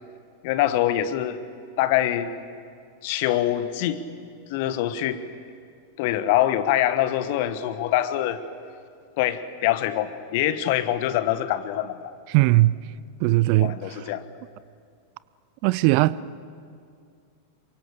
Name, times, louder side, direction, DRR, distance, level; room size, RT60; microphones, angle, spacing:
voice 1, 0.4-1.4 1.8-2.3 3.0-4.0 4.5-5.2 6.0-8.4 9.2-12.1 12.5-12.6 13.6-14.2, left 12 dB, 50° left, 1.4 m, -24 dB
voice 2, 12.3-12.7 13.2-13.7 15.6-16.4, right 18 dB, 45° right, 0.5 m, -19 dB
28.0 x 24.0 x 6.9 m
figure-of-eight pair, 90°, 0 cm